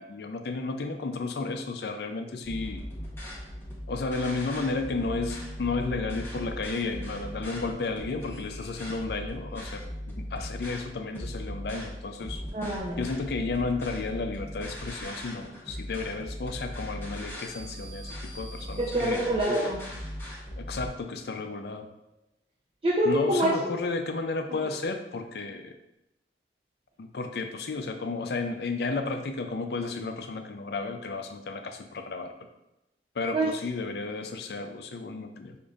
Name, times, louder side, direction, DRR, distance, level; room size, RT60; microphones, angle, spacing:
voice 1, 0.0-2.9 3.9-9.8 10.2-12.4 13.0-19.2 20.6-21.9 23.0-25.7 27.0-32.3 33.2-35.6, left 3 dB, 65° left, 6 dB, 0.4 m, -33 dB
sound 1, 2.4-20.9, equal, 15° left, 1.0 m, -39 dB
voice 2, 12.5-13.0 18.8-19.8 22.8-23.7 33.3-33.5, right 1 dB, 30° right, -4 dB, 0.5 m, -26 dB
6.7 x 2.6 x 2.4 m, 0.91 s
head